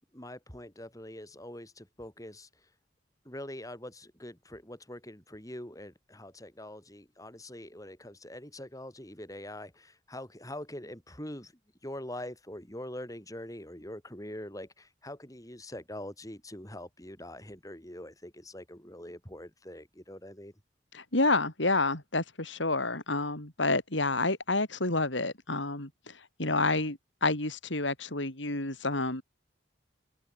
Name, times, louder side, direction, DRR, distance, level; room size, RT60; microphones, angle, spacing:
voice 1, 0.1-2.5 3.3-11.5 11.8-20.5, left 1 dB, 20° left, 6.9 m, -44 dB
voice 2, 20.9-29.2, left 2 dB, 80° left, 5.4 m, -29 dB
open air
head